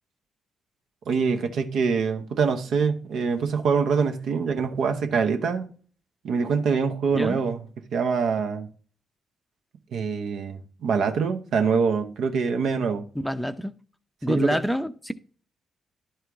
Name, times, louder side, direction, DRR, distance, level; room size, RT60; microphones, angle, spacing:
voice 1, 1.1-5.7 6.2-7.6 7.9-8.7 9.9-13.0 14.3-14.6, right 5 dB, 65° right, 0.8 m, -24 dB
voice 2, 13.2-13.7 14.2-15.1, equal, ahead, 0.6 m, -26 dB
11.0 x 4.5 x 3.5 m
hypercardioid pair, 40°, 0 cm